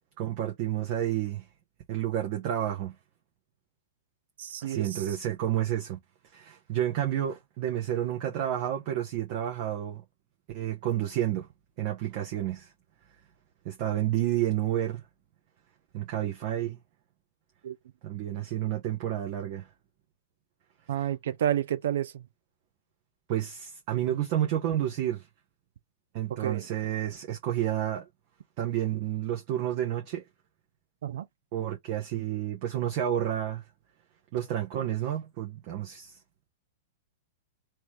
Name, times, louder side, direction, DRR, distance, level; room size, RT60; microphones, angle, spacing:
voice 1, 0.2-1.4 1.9-2.9 4.6-6.0 6.3-10.0 10.5-11.5 11.8-12.7 13.6-15.0 15.9-16.8 18.0-19.7 21.0-21.1 23.3-25.3 26.1-28.1 28.6-30.2 31.5-33.6 34.3-36.2, right 11 dB, 45° right, 0.9 m, -30 dB
voice 2, 4.4-5.0 17.6-17.8 20.9-22.3 26.3-26.7 31.0-31.3, right 10 dB, 60° right, 0.5 m, -30 dB
3.1 x 3.0 x 3.2 m
figure-of-eight pair, 100°, 0 cm